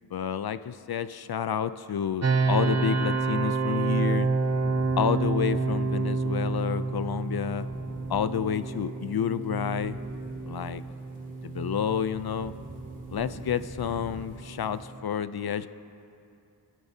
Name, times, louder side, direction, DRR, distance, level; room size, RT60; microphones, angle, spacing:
voice 1, 0.1-4.3 5.0-7.7 8.1-10.0 10.5-10.8 11.4-12.5 13.1-15.7, left 8 dB, 65° left, 13 dB, 0.5 m, -29 dB
sound 1, 2.2-15.0, right 3 dB, 40° right, 0.7 m, -29 dB
sound 2, 4.0-14.8, right 1 dB, 20° right, 2.7 m, -47 dB
27.5 x 9.5 x 2.8 m, 2.7 s
cardioid pair, 45°, 40 cm